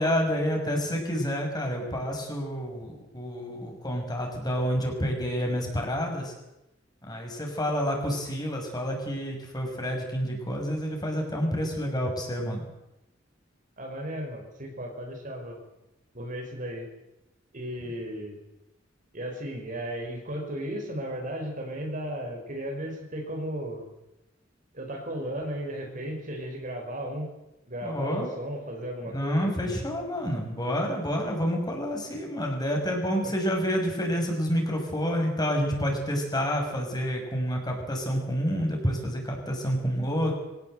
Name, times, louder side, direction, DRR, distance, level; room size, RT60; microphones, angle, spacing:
voice 1, 0.0-6.3 7.1-12.7 27.8-28.3 29.0-40.3, equal, 20° left, 1 dB, 6.2 m, -29 dB
voice 2, 13.8-15.6 16.1-16.9 17.5-18.4 19.1-23.8 24.7-27.3 27.7-29.5 33.2-33.3, equal, 45° right, 2 dB, 5.2 m, -35 dB
24.0 x 18.0 x 8.0 m, 0.92 s
head